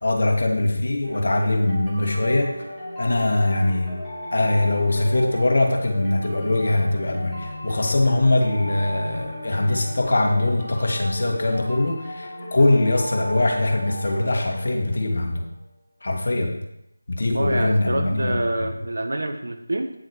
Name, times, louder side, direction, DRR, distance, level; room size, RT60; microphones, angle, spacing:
voice 1, 0.0-2.6 3.0-3.9 4.3-15.4 16.0-16.6 17.1-18.4, left 2 dB, 55° left, 2 dB, 1.9 m, -22 dB
sound 1, 1.0-15.5, equal, 5° right, 3.2 m, -35 dB
voice 2, 17.3-19.9, right 1 dB, 65° right, 5 dB, 1.5 m, -26 dB
9.4 x 7.2 x 4.7 m, 0.81 s
figure-of-eight pair, 165°, 0 cm